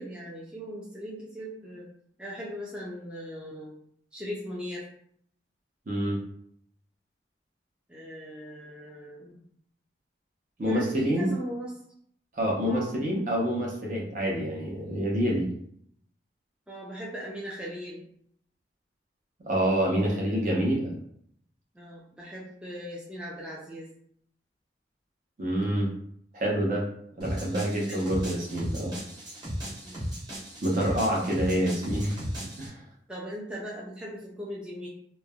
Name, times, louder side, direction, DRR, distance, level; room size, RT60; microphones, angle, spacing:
voice 1, 0.0-1.9 2.2-3.7 4.1-4.9 7.9-9.4 10.6-11.8 12.7-13.0 16.7-18.0 19.9-20.6 21.7-23.9 27.9-28.2 29.8-30.1 33.1-34.9, equal, 5° right, -5 dB, 0.3 m, -39 dB
voice 2, 5.9-6.2 10.6-11.3 12.3-15.5 19.4-20.9 25.4-25.9 26.3-26.8 27.2-29.0 30.6-32.2 32.6-32.8, equal, 45° right, -2 dB, 0.6 m, -27 dB
sound 1, 27.2-32.7, equal, 25° right, 1.1 m, -36 dB
3.1 x 2.1 x 2.2 m, 0.68 s
head